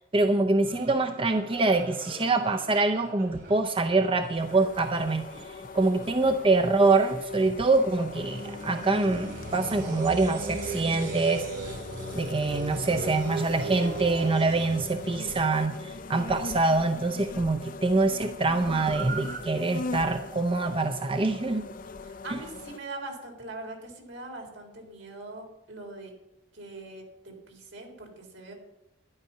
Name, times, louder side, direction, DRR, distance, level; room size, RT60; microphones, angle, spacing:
voice 1, 0.1-5.5 5.7-11.5 12.1-21.7, right 3 dB, 30° right, 7 dB, 0.6 m, -25 dB
sound 1, 0.6-16.2 18.3-19.4, right 2 dB, 60° right, 3.5 m, -39 dB
sound 2, 4.4-22.8, left 3 dB, 45° left, 0.6 m, -41 dB
voice 2, 6.0-6.4 22.0-26.1 26.5-28.5, right 2 dB, 75° right, 2 dB, 3.6 m, -42 dB
12.0 x 11.0 x 5.7 m, 0.91 s
head